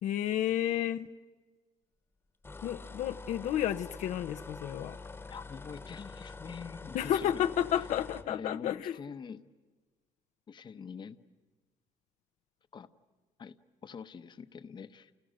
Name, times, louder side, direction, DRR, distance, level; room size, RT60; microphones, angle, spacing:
voice 1, 0.0-1.1 2.6-5.0 6.9-9.0, left 11 dB, 65° left, 8 dB, 0.8 m, -31 dB
sound 1, 2.4-8.3, left 3 dB, 20° left, 1.3 m, -46 dB
voice 2, 5.3-7.4 7.7-7.9 8.3-9.4 10.5-11.2 12.7-12.9 13.4-13.6 13.8-15.1, left 6 dB, 35° left, 11 dB, 1.0 m, -45 dB
30.0 x 29.5 x 6.5 m, 1.3 s
cardioid pair, 120°, 13 cm